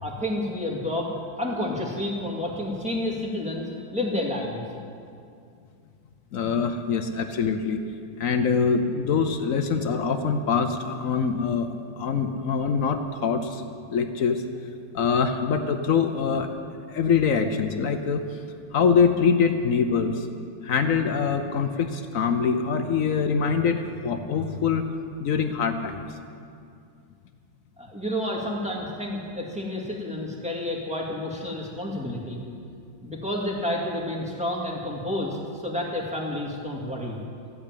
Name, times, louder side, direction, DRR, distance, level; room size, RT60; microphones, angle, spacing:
voice 1, 0.0-4.6 27.8-32.4 33.0-37.2, left 1 dB, 5° right, -3 dB, 2.1 m, -30 dB
voice 2, 6.3-7.8 8.2-13.6 13.9-14.4 14.9-16.5 16.9-20.3 20.6-24.9 25.2-26.1, left 6 dB, 65° left, 7 dB, 0.8 m, -24 dB
14.5 x 8.5 x 9.1 m, 2.4 s
omnidirectional pair, 2.2 m